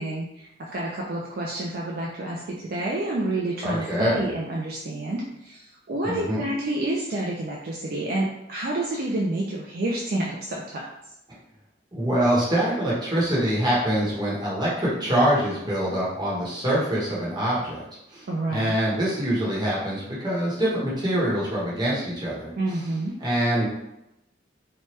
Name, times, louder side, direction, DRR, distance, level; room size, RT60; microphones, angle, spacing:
voice 1, 0.0-10.9 18.3-18.7 22.6-23.2, right 1 dB, 55° right, -3 dB, 0.4 m, -29 dB
voice 2, 3.6-4.2 6.0-6.4 11.9-17.8 18.1-22.9 23.2-23.7, right 1 dB, 25° right, -7 dB, 1.0 m, -25 dB
2.9 x 2.2 x 3.1 m, 0.86 s
head